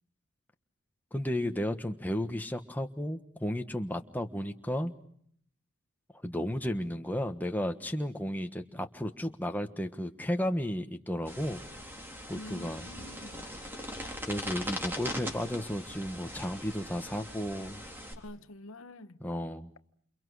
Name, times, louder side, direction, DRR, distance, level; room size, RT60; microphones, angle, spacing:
voice 1, 1.1-4.9 6.2-11.6 12.3-12.9 14.3-17.8 19.2-19.7, equal, 10° left, 1.3 m, -33 dB
sound 1, 11.3-18.1, equal, 10° right, 4.0 m, -40 dB
voice 2, 12.3-13.4 18.1-19.2, left 1 dB, 65° left, 1.1 m, -47 dB
29.5 x 28.5 x 6.4 m
head